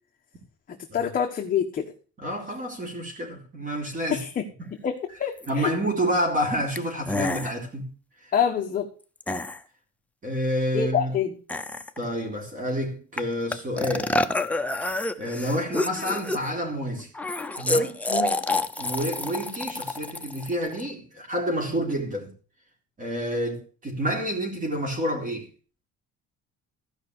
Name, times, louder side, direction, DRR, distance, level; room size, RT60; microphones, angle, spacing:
voice 1, 0.9-1.9 4.1-4.3 4.8-5.7 8.3-8.9 10.7-11.4 18.1-18.4, left 8 dB, 30° left, 1.4 m, -26 dB
voice 2, 2.2-4.3 5.5-7.9 8.2-8.3 10.2-11.2 12.0-14.2 14.8-17.1 17.6-18.0 18.8-22.3 23.0-25.5, equal, 25° right, 4.1 m, -29 dB
sound 1, 5.4-5.5 6.8-6.9 7.1-7.6 9.2-9.6 11.5-12.0 13.2-13.3 13.5-16.6 17.1-20.9, left 2 dB, 5° left, 0.5 m, -28 dB
15.0 x 5.8 x 8.0 m
cardioid pair, 175°, 30 cm